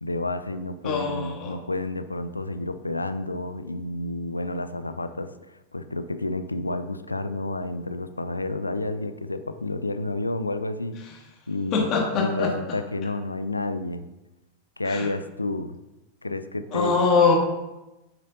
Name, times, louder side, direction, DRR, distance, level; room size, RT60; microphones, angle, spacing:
voice 1, 0.0-11.0 11.5-11.9 12.2-14.0 14.8-15.8 16.2-17.1, left 2 dB, 80° left, 10 dB, 0.4 m, -30 dB
voice 2, 0.8-1.6 11.7-12.5 14.8-15.1 16.7-17.3, left 4 dB, 35° left, -1 dB, 1.9 m, -23 dB
9.5 x 6.5 x 2.6 m, 1.0 s
figure-of-eight pair, 90°, 0 cm